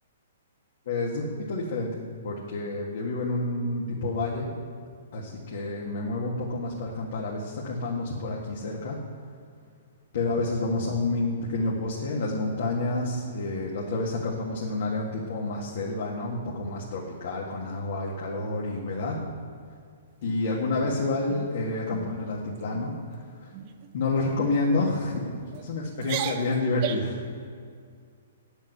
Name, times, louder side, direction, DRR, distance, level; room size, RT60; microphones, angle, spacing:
voice 1, 0.9-4.5 5.1-9.0 10.1-19.2 20.2-23.5 23.9-25.2 25.6-27.2, left 2 dB, 60° left, -3 dB, 1.8 m, -29 dB
sound 1, 20.2-20.8 21.3-21.5 21.9-22.2 22.5-22.9 23.5-23.9 24.4-24.5 25.3-25.6 26.0-27.2, right 10 dB, 35° right, 0.8 m, -35 dB
9.1 x 7.2 x 8.0 m, 2.2 s
hypercardioid pair, 150°, 0 cm